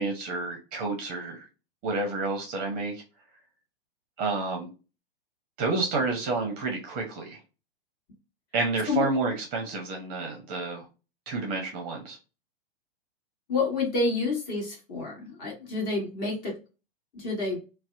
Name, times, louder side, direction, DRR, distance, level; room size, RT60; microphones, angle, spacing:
voice 1, 0.0-1.5 1.8-3.0 4.2-4.7 5.6-7.4 8.5-10.8 11.3-12.2, right 3 dB, 30° right, 0.6 m, -30 dB
voice 2, 13.5-16.5 17.1-17.6, left 3 dB, 35° left, 1.4 m, -28 dB
2.7 x 2.0 x 2.4 m
hypercardioid pair, 110°, 31 cm